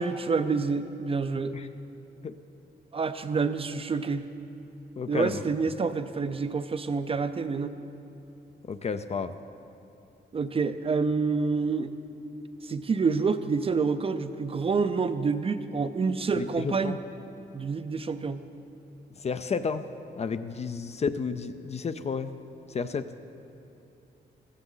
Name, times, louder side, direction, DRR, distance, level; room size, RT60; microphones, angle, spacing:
voice 1, 0.0-1.6 2.9-4.3 5.1-7.8 10.3-11.9 12.6-17.0 17.5-18.4, right 4 dB, 30° right, 10 dB, 0.5 m, -28 dB
voice 2, 5.0-5.4 8.7-9.3 16.3-17.0 19.2-19.8 20.2-22.3 22.7-23.1, left 5 dB, 35° left, 11 dB, 0.4 m, -31 dB
15.0 x 14.0 x 3.9 m, 2.8 s
wide cardioid pair, 135°, 18 cm